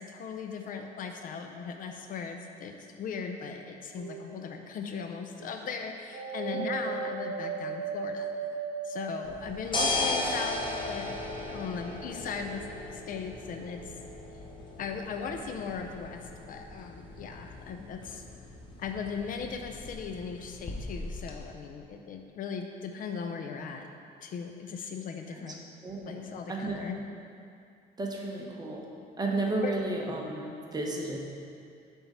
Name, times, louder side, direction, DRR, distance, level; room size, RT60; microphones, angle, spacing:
voice 1, 0.0-8.3 8.8-11.1 11.5-12.6 12.9-13.8 14.8-18.2 18.8-23.9 24.2-25.6 26.1-27.0 29.6-29.8, left 6 dB, 55° left, 4 dB, 0.5 m, -38 dB
sound 1, 4.0-4.7 6.1-9.9, right 5 dB, 75° right, 0.7 m, -36 dB
sound 2, 9.2-21.4, left 2 dB, 30° left, 0.9 m, -37 dB
voice 2, 25.8-26.8 28.0-28.9 29.2-31.2, right 2 dB, 25° right, -1 dB, 1.0 m, -33 dB
7.0 x 3.7 x 5.5 m, 2.4 s
cardioid pair, 110°, 17 cm